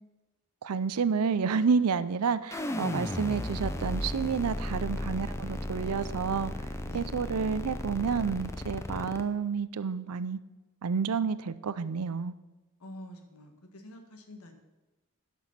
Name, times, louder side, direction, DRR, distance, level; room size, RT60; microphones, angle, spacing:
voice 1, 0.6-6.5 6.9-10.4 10.8-12.3, right 5 dB, 90° right, 15 dB, 0.5 m, -29 dB
sound 1, 2.5-9.2, left 1 dB, 10° left, 0.5 m, -35 dB
voice 2, 12.8-14.5, left 1 dB, 80° left, 6 dB, 1.5 m, -47 dB
11.0 x 6.2 x 5.6 m, 1.1 s
head